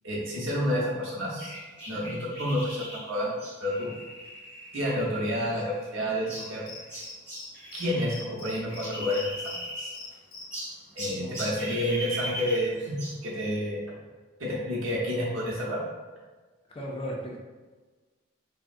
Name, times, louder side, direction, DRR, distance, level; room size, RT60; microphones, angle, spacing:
voice 1, 0.0-1.5 1.9-3.9 4.7-6.6 7.7-10.0 10.9-13.8 14.4-15.8, equal, 75° right, -5 dB, 0.9 m, -29 dB
sound 1, 1.4-8.2 8.5-10.1 10.5-13.2, right 1 dB, 5° right, 1.0 m, -39 dB
Cricket, 6.3-7.5 7.7-9.6 9.9-10.4, left 3 dB, 90° left, 0.7 m, -43 dB
voice 2, 11.2-11.8 16.7-17.4, equal, 30° left, -2 dB, 0.4 m, -37 dB
3.4 x 2.1 x 2.5 m, 1.3 s
head